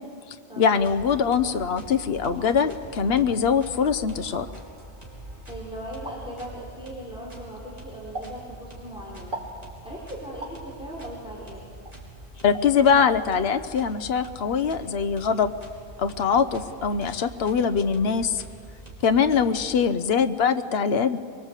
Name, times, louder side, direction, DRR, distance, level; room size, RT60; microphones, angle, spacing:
voice 1, 0.6-4.5 12.4-15.5 16.0-18.4 19.0-21.2, left 6 dB, 80° left, 9 dB, 1.1 m, -22 dB
sound 1, 0.7-20.1, right 1 dB, 40° right, 4.4 m, -45 dB
sound 2, 0.8-6.6, equal, 20° left, 4.5 m, -48 dB
sound 3, 2.0-2.4 3.3-3.4 4.2-4.5 6.0-6.2 8.1-8.4 9.3-9.6 10.4-10.6 11.9-12.0 12.5-12.7 13.0-13.1, right 2 dB, 55° right, 3.4 m, -37 dB
voice 2, 5.5-11.6, right 1 dB, 5° right, -5 dB, 4.5 m, -39 dB
25.0 x 23.0 x 8.2 m, 2.2 s
omnidirectional pair, 1.0 m